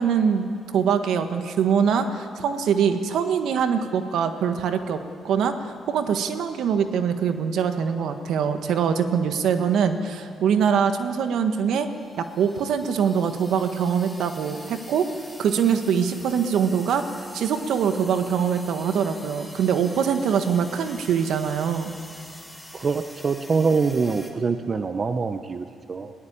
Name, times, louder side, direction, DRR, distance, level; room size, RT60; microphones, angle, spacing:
voice 1, 0.0-11.9 12.2-15.1 15.4-17.0 17.3-21.9, right 7 dB, 75° right, 8 dB, 1.5 m, -23 dB
sound 1, 11.9-24.3, left 1 dB, 5° left, 2.8 m, -45 dB
voice 2, 22.7-26.1, right 4 dB, 40° right, 9 dB, 0.9 m, -24 dB
21.0 x 17.5 x 8.7 m, 2.2 s
cardioid pair, 90°, 0 cm